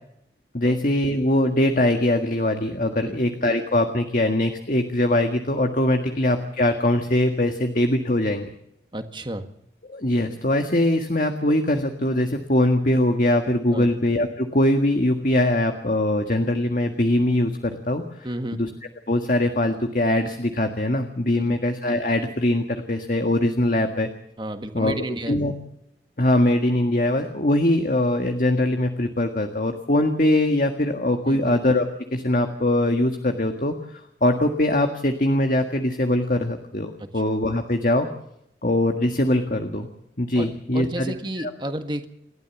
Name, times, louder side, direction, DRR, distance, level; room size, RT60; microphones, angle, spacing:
voice 1, 0.5-8.5 9.9-18.0 18.5-18.7 19.1-24.1 24.7-25.5 26.2-38.1 38.6-39.9 40.2-41.5, left 1 dB, 50° left, 5 dB, 1.8 m, -22 dB
voice 2, 8.9-9.4 13.7-13.9 18.2-18.6 21.3-21.6 24.4-25.4 31.3-31.6 37.0-37.1 40.4-40.5 40.7-42.1, right 1 dB, 25° right, 7 dB, 1.7 m, -31 dB
29.0 x 12.5 x 7.3 m, 0.77 s
head